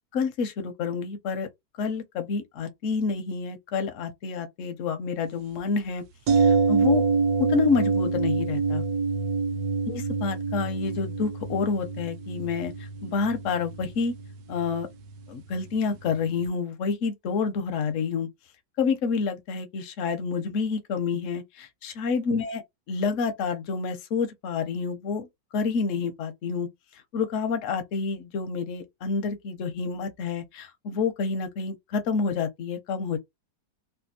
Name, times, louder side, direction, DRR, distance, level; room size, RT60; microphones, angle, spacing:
voice 1, 0.1-1.5 1.8-6.0 6.4-7.0 7.4-8.8 9.9-14.1 14.5-14.9 15.3-18.3 18.8-22.6 22.9-25.3 25.5-26.7 27.1-33.2, left 5 dB, 65° left, 0.7 m, -28 dB
sound 1, 6.3-16.1 16.4-16.5, right 4 dB, 70° right, 1.0 m, -27 dB
3.3 x 2.3 x 2.6 m
omnidirectional pair, 2.0 m